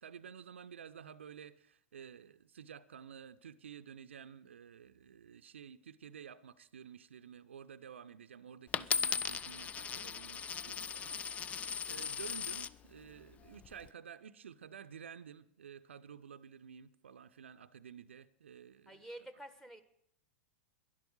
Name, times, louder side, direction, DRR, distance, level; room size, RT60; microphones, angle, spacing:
voice 1, 0.0-19.1, right 8 dB, 70° right, 0.6 m, -52 dB
Coin (dropping), 8.7-12.7 13.4-13.9, left 7 dB, 20° left, 0.4 m, -37 dB
voice 2, 18.9-19.8, right 1 dB, 5° left, 1.3 m, -49 dB
11.5 x 11.0 x 7.9 m
figure-of-eight pair, 95°, 7 cm